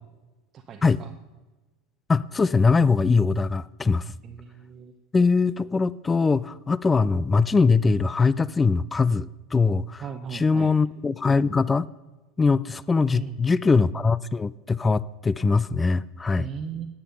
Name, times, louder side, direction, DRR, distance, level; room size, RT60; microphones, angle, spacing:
voice 1, 0.5-1.1 4.2-4.9 10.0-10.7 13.1-13.5 16.4-16.9, right 7 dB, 35° right, 5 dB, 0.8 m, -37 dB
voice 2, 2.1-4.1 5.1-10.0 10.3-11.9 12.4-16.5, left 4 dB, 20° left, 20 dB, 0.3 m, -22 dB
10.0 x 9.3 x 5.4 m, 1.2 s
figure-of-eight pair, 80°, 0 cm